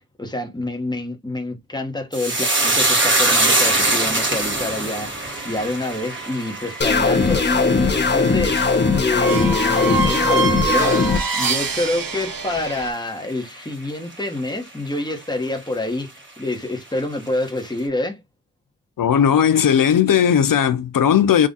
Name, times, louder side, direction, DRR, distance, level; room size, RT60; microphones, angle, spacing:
voice 1, 0.2-5.1 5.4-16.1 16.4-18.2, left 2 dB, 10° left, 1.0 m, -27 dB
sound 1, 2.1-10.7 11.0-11.7 12.0-12.2, right 2 dB, 35° right, 1.4 m, -23 dB
sound 2, 5.2-12.9, right 4 dB, 80° right, 1.1 m, -27 dB
sound 3, 6.8-11.2, left 4 dB, 30° left, 0.7 m, -19 dB
voice 2, 19.0-21.5, left 8 dB, 75° left, 0.5 m, -16 dB
3.7 x 2.4 x 3.9 m
wide cardioid pair, 105°, 34 cm